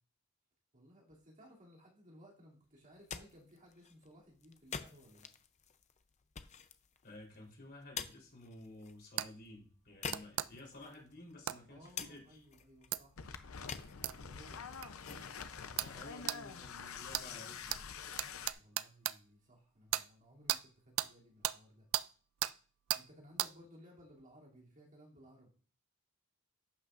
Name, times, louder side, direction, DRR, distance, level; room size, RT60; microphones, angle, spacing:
voice 1, 0.7-5.3 11.7-13.2 14.1-15.2 18.5-21.9 22.9-25.5, equal, 40° right, -3 dB, 2.9 m, -60 dB
sound 1, 2.8-16.8, left 6 dB, 35° left, 0.6 m, -50 dB
voice 2, 7.0-12.4 15.7-17.8, left 1 dB, 50° left, -2 dB, 3.7 m, -53 dB
sound 2, 9.2-9.3 10.1-10.5 11.5-11.6 12.9-13.0 14.0-14.2 14.8-14.9 15.8-15.9 16.3-16.4 17.1-17.3 17.7-17.8 18.2-19.2 19.9-20.1 20.5-20.6 21.0-21.1 21.4-21.6 21.9-22.1 22.4-22.5 22.9-23.0 23.4-23.5, right 14 dB, 70° right, 0.4 m, -35 dB
sound 3, 13.2-18.5, left 6 dB, 80° left, 0.7 m, -47 dB
11.5 x 8.1 x 2.5 m, 0.40 s
head